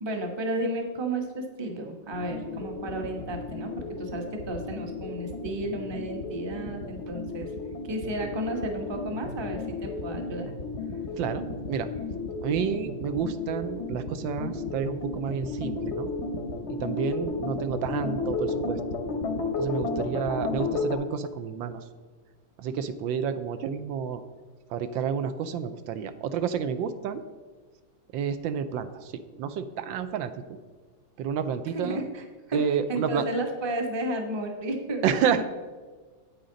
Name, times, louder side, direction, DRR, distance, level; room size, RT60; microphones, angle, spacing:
voice 1, 0.0-7.5 7.8-10.5 20.0-20.1 31.8-32.6 32.9-35.0 35.3-35.4, right 1 dB, 20° right, 3 dB, 0.7 m, -33 dB
sound 1, 2.1-21.0, left 3 dB, 50° left, 0.8 m, -33 dB
voice 2, 11.2-11.9 12.4-16.1 16.8-18.8 19.6-21.8 22.6-24.2 24.7-27.2 28.1-29.1 29.4-30.3 31.2-32.0 32.5-33.2 35.0-35.4, right 7 dB, 80° right, 10 dB, 1.3 m, -30 dB
9.2 x 8.5 x 3.8 m, 1.4 s
omnidirectional pair, 2.1 m